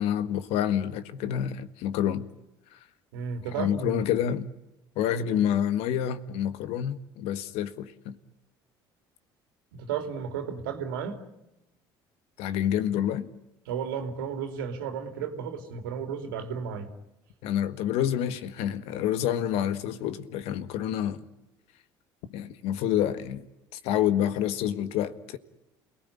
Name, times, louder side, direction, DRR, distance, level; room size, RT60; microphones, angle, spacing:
voice 1, 0.0-2.3 3.6-4.5 5.0-8.1 12.4-13.3 17.4-21.2 22.3-23.4 23.7-25.4, left 10 dB, 70° left, 1.7 m, -28 dB
voice 2, 3.1-4.0 9.7-11.2 13.7-16.9, right 7 dB, 85° right, 3.3 m, -33 dB
29.0 x 19.0 x 9.9 m
supercardioid pair, 75°, 11 cm